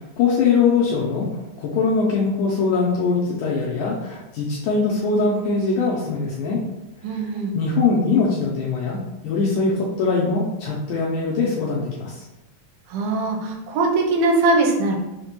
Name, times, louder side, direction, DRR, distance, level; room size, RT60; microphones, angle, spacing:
voice 1, 0.2-1.3 1.6-6.6 7.6-9.0 9.2-12.2, left 4 dB, 85° left, -4 dB, 1.8 m, -21 dB
voice 2, 7.0-7.5 12.9-15.0, right 2 dB, 85° right, 1 dB, 2.5 m, -21 dB
5.9 x 2.1 x 2.9 m, 0.97 s
omnidirectional pair, 4.1 m